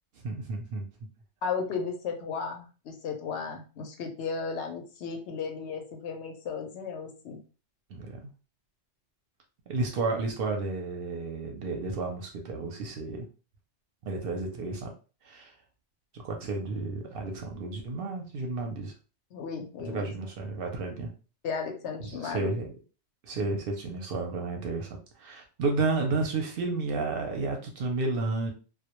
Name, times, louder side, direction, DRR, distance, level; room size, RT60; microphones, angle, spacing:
voice 1, 0.2-0.8 7.9-8.2 9.7-13.3 14.0-14.9 15.2-15.5 16.2-18.9 19.8-21.1 22.0-22.7 23.2-24.9 25.2-28.5, right 3 dB, 65° right, 3 dB, 0.7 m, -32 dB
voice 2, 1.4-7.4 19.3-20.1 21.4-22.5, left 5 dB, 75° left, 3 dB, 0.8 m, -35 dB
2.1 x 2.1 x 2.9 m, 0.36 s
omnidirectional pair, 1.2 m